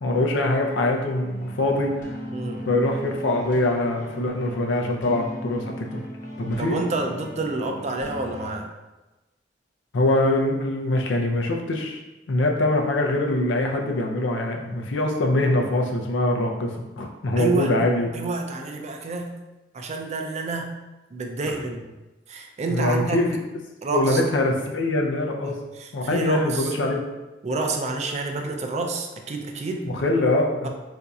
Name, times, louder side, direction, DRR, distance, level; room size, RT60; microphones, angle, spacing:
voice 1, 0.0-2.1 2.7-6.0 6.4-6.8 9.9-12.0 12.3-18.1 22.7-23.4 23.9-25.6 25.9-27.0 29.8-30.7, left 1 dB, 85° left, 1 dB, 0.5 m, -23 dB
sound 1, 1.2-8.6, equal, 45° left, 1.1 m, -37 dB
voice 2, 2.3-2.7 6.6-8.7 17.4-17.8 18.1-19.4 19.7-20.8 21.1-21.9 22.3-23.3 23.8-24.2 25.4-26.7 27.4-29.9, right 3 dB, 40° right, 3 dB, 0.4 m, -29 dB
4.0 x 2.7 x 2.3 m, 1.1 s
head